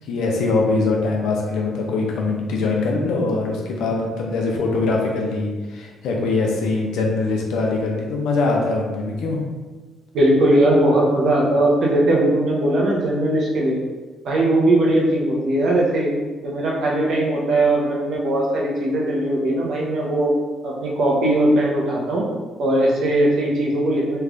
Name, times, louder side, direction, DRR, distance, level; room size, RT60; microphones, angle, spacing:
voice 1, 0.0-9.4, left 3 dB, 85° left, 0 dB, 0.6 m, -22 dB
voice 2, 10.1-13.8 14.2-16.1 16.4-20.3 20.6-22.3 22.6-24.2, right 1 dB, 70° right, -2 dB, 0.9 m, -19 dB
3.3 x 2.5 x 3.4 m, 1.3 s
cardioid pair, 90°, 0 cm